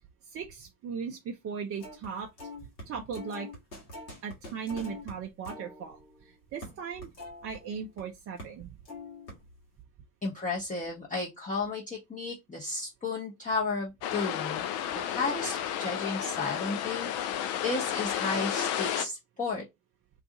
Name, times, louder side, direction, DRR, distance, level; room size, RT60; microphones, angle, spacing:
voice 1, 0.3-2.3 2.9-3.5 4.2-7.1 7.4-8.8, right 6 dB, 30° right, 0.5 m, -38 dB
sound 1, 1.8-2.1 2.4-8.0 8.4-8.6 8.8-9.7, left 2 dB, 85° left, 1.2 m, -45 dB
voice 2, 10.2-17.4 17.6-19.6, left 3 dB, 15° left, 0.8 m, -33 dB
sound 2, 14.0-19.1, left 10 dB, 55° left, 0.6 m, -32 dB
2.6 x 2.4 x 3.7 m
figure-of-eight pair, 60°, 49 cm